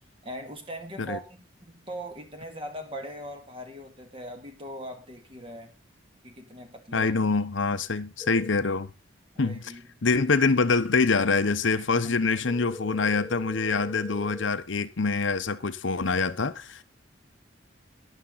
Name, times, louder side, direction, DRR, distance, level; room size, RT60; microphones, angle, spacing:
voice 1, 0.2-5.7 6.2-7.1 9.3-9.9 11.8-12.3, right 1 dB, 30° right, 2.4 m, -40 dB
voice 2, 6.9-8.9 9.4-9.7 10.0-16.8, left 4 dB, 75° left, 0.9 m, -25 dB
sound 1, 8.2-8.5 12.5-14.5, left 2 dB, 5° right, 0.6 m, -41 dB
12.0 x 11.0 x 4.0 m
head